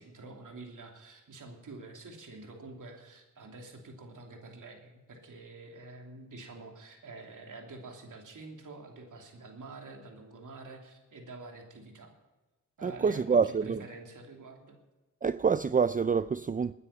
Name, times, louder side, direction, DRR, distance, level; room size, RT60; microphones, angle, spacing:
voice 1, 0.0-12.1 12.8-14.8, right 3 dB, 80° right, 3.0 m, -47 dB
voice 2, 12.8-13.8 15.2-16.7, right 5 dB, 25° right, 0.4 m, -27 dB
21.0 x 9.9 x 5.8 m
cardioid pair, 60°, 31 cm